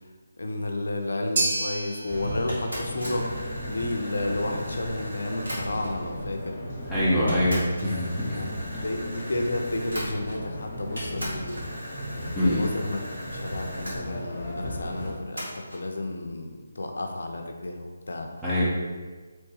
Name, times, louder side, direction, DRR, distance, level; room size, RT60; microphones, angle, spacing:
voice 1, 0.4-3.3 3.7-6.6 8.3-8.5 8.8-11.6 12.2-13.0 13.3-18.3, left 2 dB, 70° left, 3 dB, 0.4 m, -31 dB
sound 1, 1.4-9.7, right 2 dB, 55° right, 0.4 m, -36 dB
sound 2, 2.1-15.1, equal, 40° left, 0.7 m, -36 dB
sound 3, 2.5-6.0 6.8-6.9 7.3-10.6 11.0-14.0 15.4-15.8, equal, 80° right, 1.3 m, -39 dB
voice 2, 6.9-8.5 8.7-8.8 12.4-12.6 18.4-18.7, left 1 dB, 5° right, -12 dB, 0.6 m, -24 dB
3.0 x 2.2 x 3.1 m, 1.4 s
figure-of-eight pair, 150°, 0 cm